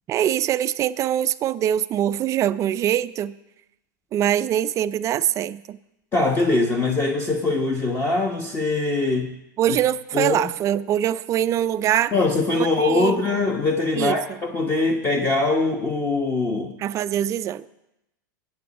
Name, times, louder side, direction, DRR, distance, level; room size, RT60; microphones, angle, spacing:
voice 1, 0.1-3.3 4.1-5.8 9.6-12.1 12.8-13.2 13.9-14.1 16.8-17.7, right 11 dB, 30° right, 15 dB, 0.4 m, -23 dB
voice 2, 6.1-9.3 10.1-10.4 12.1-16.7, left 3 dB, 20° left, 2 dB, 1.1 m, -22 dB
20.0 x 8.7 x 4.2 m, 0.89 s
hypercardioid pair, 130°, 11 cm